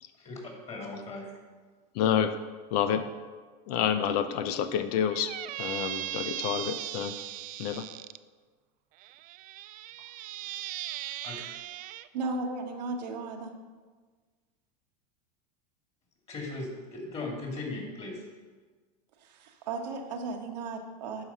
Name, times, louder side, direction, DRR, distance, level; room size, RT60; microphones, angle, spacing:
voice 1, 0.7-1.3 11.2-11.4 16.3-18.3, left 2 dB, 30° left, 0 dB, 2.8 m, -38 dB
voice 2, 1.9-2.4 2.7-3.1 3.7-7.1 7.6-7.9, left 9 dB, 65° left, 10 dB, 0.6 m, -28 dB
Squeak, 5.1-8.2 9.0-12.1, right 15 dB, 40° right, 0.4 m, -38 dB
voice 3, 12.1-13.5 19.2-21.2, right 3 dB, 90° right, 3 dB, 1.4 m, -35 dB
11.5 x 4.9 x 5.8 m, 1.4 s
supercardioid pair, 125°, 21 cm